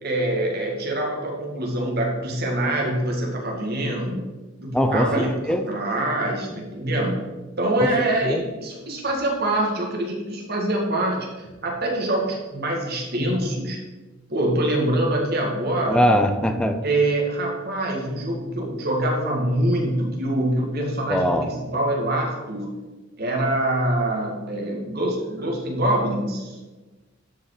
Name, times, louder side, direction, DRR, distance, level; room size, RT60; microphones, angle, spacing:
voice 1, 0.0-4.3 4.6-7.2 7.6-11.3 11.6-13.8 14.3-16.1 16.8-22.7 23.2-26.6, right 1 dB, 50° right, 0 dB, 2.3 m, -24 dB
voice 2, 4.7-5.6 7.8-7.9 8.2-8.4 15.9-16.8 21.1-21.5, equal, 5° left, 7 dB, 0.7 m, -21 dB
12.5 x 5.3 x 5.1 m, 1.2 s
head